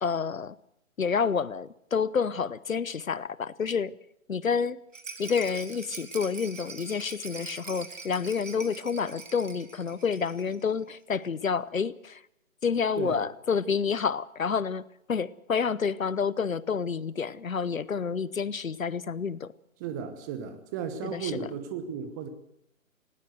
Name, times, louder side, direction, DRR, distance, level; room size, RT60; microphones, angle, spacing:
voice 1, 0.0-0.6 1.0-3.9 4.3-4.8 5.2-12.2 12.6-19.5 21.0-21.3, left 6 dB, 70° left, 1.0 m, -29 dB
Rattle, 4.9-10.6 10.9-11.0 11.2-11.3, right 4 dB, 60° right, 3.4 m, -43 dB
voice 2, 19.8-22.3, right 7 dB, 15° right, 1.0 m, -35 dB
19.0 x 18.5 x 8.0 m
figure-of-eight pair, 140°, 42 cm